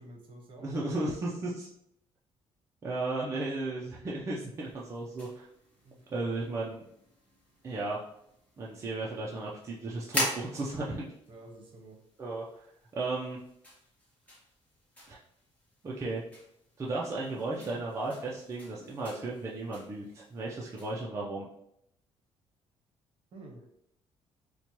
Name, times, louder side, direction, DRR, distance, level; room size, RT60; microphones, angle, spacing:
voice 1, 0.0-1.1 5.8-6.3 11.3-12.0 17.3-17.8 23.3-23.6, right 2 dB, 50° right, 1 dB, 1.0 m, -50 dB
voice 2, 0.6-1.7 2.8-5.5 6.1-6.8 7.6-8.0 8.6-11.0 12.2-12.6 12.9-13.4 15.1-15.2 15.8-16.2 16.8-21.5, right 2 dB, 25° right, -4 dB, 0.5 m, -35 dB
sound 1, 4.5-21.0, left 1 dB, 15° left, 1.2 m, -43 dB
4.3 x 2.2 x 2.9 m, 0.77 s
cardioid pair, 120°, 11 cm